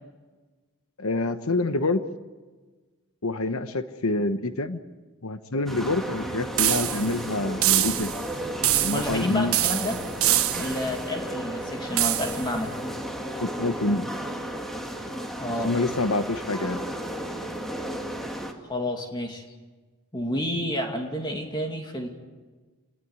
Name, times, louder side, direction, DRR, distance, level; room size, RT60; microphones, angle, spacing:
voice 1, 1.0-2.0 3.2-4.8 5.2-8.1 8.8-9.5 13.4-14.1 15.6-16.8, left 2 dB, 70° left, 10 dB, 1.2 m, -27 dB
sound 1, 5.7-18.5, right 1 dB, ahead, 2.4 m, -34 dB
sound 2, 6.6-7.2 7.6-8.3 8.6-9.2 9.5-10.9 12.0-12.5, right 13 dB, 70° right, 1.5 m, -24 dB
voice 2, 8.9-10.0 10.5-12.8 15.4-15.7 18.6-19.5 20.1-22.1, left 1 dB, 20° left, 3 dB, 2.5 m, -30 dB
28.0 x 20.5 x 9.7 m, 1.4 s
head